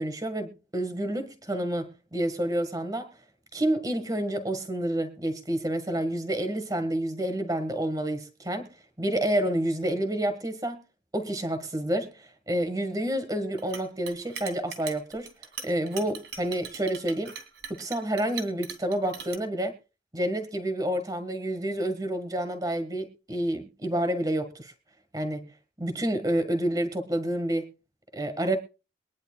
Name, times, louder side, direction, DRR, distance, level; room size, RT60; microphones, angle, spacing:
voice 1, 0.0-3.1 3.5-8.7 9.0-10.8 11.1-15.3 15.6-17.3 17.7-19.7 20.1-24.7 25.1-25.5 25.8-27.7 28.1-28.6, right 1 dB, 20° right, 1.6 m, -29 dB
Chink clink, 13.6-19.4, right 7 dB, 90° right, 2.7 m, -40 dB
23.0 x 10.5 x 2.3 m
head